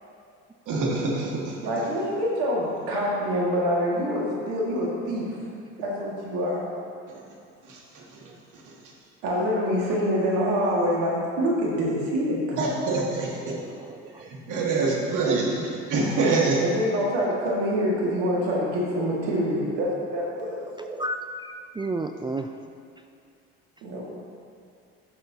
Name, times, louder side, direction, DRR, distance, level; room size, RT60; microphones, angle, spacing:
voice 1, 0.7-1.3 12.9-13.3 14.5-16.6, right 3 dB, 55° right, -2 dB, 1.9 m, -24 dB
voice 2, 1.6-5.4 5.8-6.6 9.2-13.0 13.4-13.8 14.7-14.8 16.6-20.7 23.8-24.0, equal, 75° right, -4 dB, 2.0 m, -26 dB
voice 3, 20.8-22.5, right 2 dB, 15° right, 5 dB, 0.3 m, -31 dB
11.0 x 6.5 x 2.8 m, 2.4 s
hypercardioid pair, 60°, 36 cm